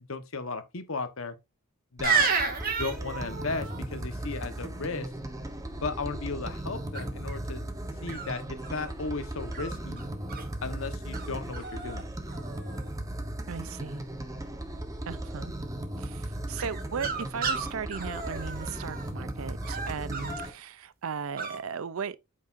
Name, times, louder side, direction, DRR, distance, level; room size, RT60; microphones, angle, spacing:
voice 1, 0.1-1.3 1.9-2.3 2.7-5.1 5.8-7.7 8.0-10.0 10.6-12.1 20.2-20.4, left 4 dB, 75° left, 1.2 m, -35 dB
sound 1, 2.0-20.5, right 1 dB, 15° right, 1.1 m, -37 dB
sound 2, 2.0-3.8 6.9-7.4 8.1-8.9 9.5-10.5 11.1-11.3 11.5-12.0 12.3-12.9 16.6-19.1 19.6-20.5 21.4-21.6, right 5 dB, 45° right, 2.2 m, -32 dB
voice 2, 13.5-14.0 15.1-15.5 16.0-22.2, right 6 dB, 80° right, 0.5 m, -37 dB
8.6 x 6.7 x 2.6 m
head